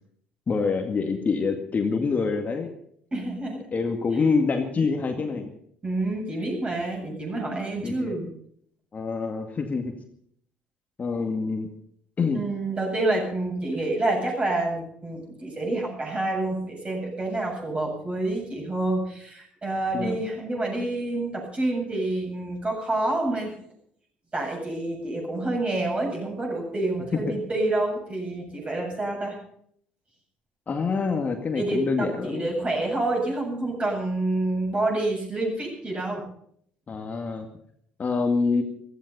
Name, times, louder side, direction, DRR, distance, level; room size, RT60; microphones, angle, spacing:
voice 1, 0.5-2.7 3.7-5.5 7.8-8.1 8.9-9.9 11.0-11.7 12.2-12.4 19.9-20.2 27.3-27.4 30.7-32.5 36.9-37.5 38.0-38.6, left 4 dB, 35° left, 4 dB, 2.1 m, -26 dB
voice 2, 3.1-3.7 5.8-8.3 12.3-23.5 24.3-29.4 31.5-36.2, right 2 dB, 25° right, 0 dB, 7.9 m, -28 dB
16.0 x 14.5 x 5.5 m, 0.66 s
figure-of-eight pair, 55°, 5 cm